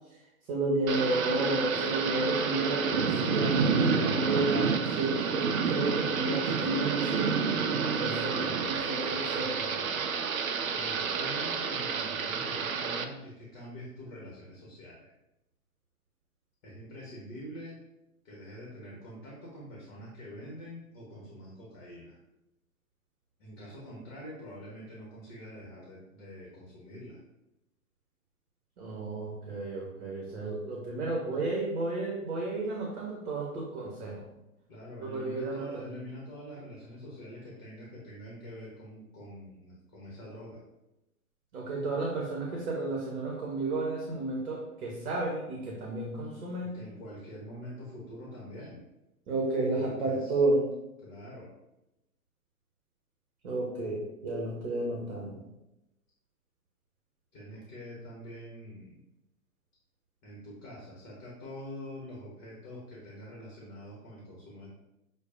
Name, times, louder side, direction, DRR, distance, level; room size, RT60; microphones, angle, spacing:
voice 1, 0.1-7.3 7.7-9.5 28.8-34.2 35.0-35.9 41.5-46.7 49.3-50.7 53.4-55.4, right 2 dB, 45° right, -2 dB, 1.0 m, -32 dB
Thunder / Rain, 0.9-13.0, right 5 dB, 65° right, 0.5 m, -29 dB
voice 2, 8.3-15.1 16.6-17.8 18.2-22.2 23.4-27.2 34.7-40.6 46.6-48.8 49.7-50.4 51.0-51.5 57.3-59.0 60.2-64.7, equal, 30° left, -4 dB, 1.1 m, -45 dB
6.3 x 2.2 x 2.5 m, 0.92 s
figure-of-eight pair, 110°, 45 cm